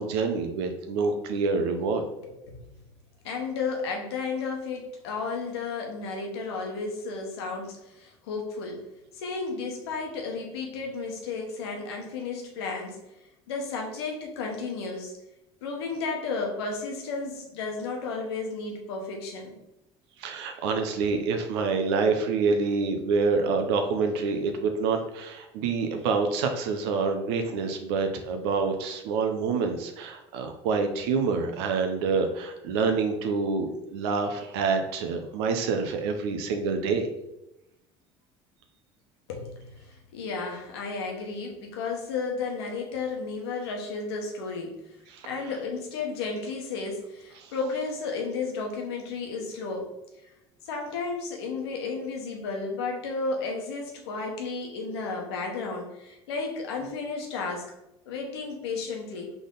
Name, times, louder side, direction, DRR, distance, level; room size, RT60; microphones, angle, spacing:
voice 1, 0.0-2.0 20.2-37.1 45.1-45.3 47.4-47.5, right 4 dB, 80° right, 5 dB, 0.6 m, -27 dB
voice 2, 2.2-2.6 3.2-8.9 9.1-13.0 13.5-15.1 15.6-19.6 39.3-44.9 45.2-49.9 50.2-50.3 50.6-57.7 58.1-59.3, left 4 dB, 90° left, 1 dB, 1.1 m, -33 dB
3.9 x 3.5 x 3.8 m, 0.90 s
supercardioid pair, 90°, 13 cm